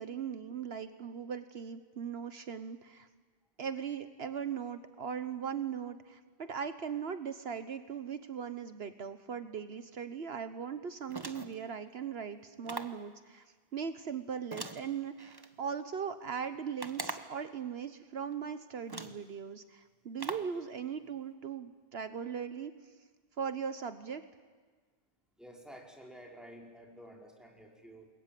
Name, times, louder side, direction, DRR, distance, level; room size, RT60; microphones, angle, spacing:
voice 1, 0.0-3.1 3.6-13.5 13.7-22.7 23.4-24.2, right 7 dB, 70° right, 10 dB, 1.3 m, -39 dB
sound 1, 11.1-11.7 12.7-13.1 14.5-15.5 16.8-17.4 18.3-18.4 18.9-19.3 20.2-20.6, right 2 dB, 20° right, 1.2 m, -42 dB
voice 2, 25.4-28.1, equal, ahead, 0 dB, 5.0 m, -51 dB
29.0 x 21.5 x 9.2 m, 1.5 s
omnidirectional pair, 1.1 m